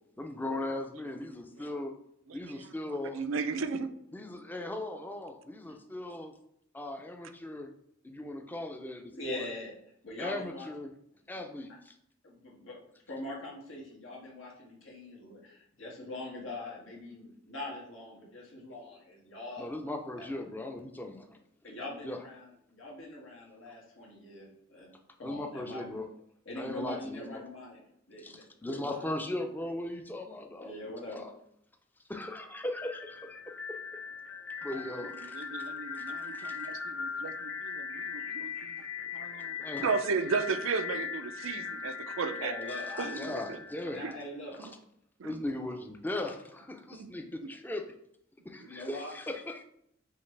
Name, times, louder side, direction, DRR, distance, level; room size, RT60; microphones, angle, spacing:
voice 1, 0.2-1.9 2.3-3.2 4.1-6.3 6.7-7.7 8.0-9.5 10.2-10.9 11.3-12.0 19.6-21.4 22.0-22.2 25.2-26.1 26.6-27.4 28.2-31.3 32.1-33.4 34.6-35.7 35.9-36.6 39.6-39.9 43.1-44.0 44.6-44.7 45.2-48.0 48.4-49.6, left 1 dB, 10° left, 5 dB, 0.4 m, -38 dB
voice 2, 2.3-3.9 34.7-38.8 39.1-42.6 43.0-43.6 44.0-44.2 44.6-44.7 45.2-45.4 46.9-47.1 47.4-47.5, right 5 dB, 90° right, 10 dB, 0.4 m, -35 dB
voice 3, 9.1-9.7 10.0-10.7 11.3-11.5 12.2-19.7 20.2-20.3 21.6-24.9 25.2-25.9 26.4-29.0 30.6-31.2 42.4-43.5 43.9-44.6 48.7-49.1, left 1 dB, 85° left, -3 dB, 1.6 m, -42 dB
sound 1, 32.7-44.6, left 6 dB, 65° left, 0.7 m, -40 dB
5.6 x 2.9 x 3.2 m, 0.75 s
head